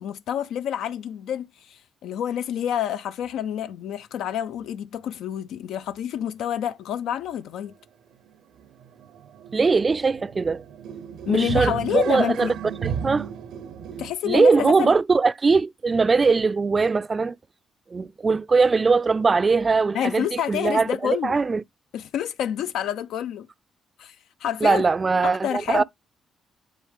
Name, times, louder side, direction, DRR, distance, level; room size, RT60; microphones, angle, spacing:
voice 1, 0.0-7.7 11.3-12.5 14.0-14.9 19.9-21.4 21.9-23.5 24.0-24.2 24.4-24.9 25.2-25.8, left 10 dB, 80° left, 0.3 m, -28 dB
sound 1, 7.2-7.3 7.7-14.1, right 8 dB, 85° right, 0.7 m, -34 dB
voice 2, 9.5-10.6 11.3-12.5 12.8-13.3 14.2-17.4 17.9-21.6 24.6-25.8, right 4 dB, 30° right, 0.3 m, -21 dB
10.0 x 3.6 x 3.3 m
cardioid pair, 90°, 0 cm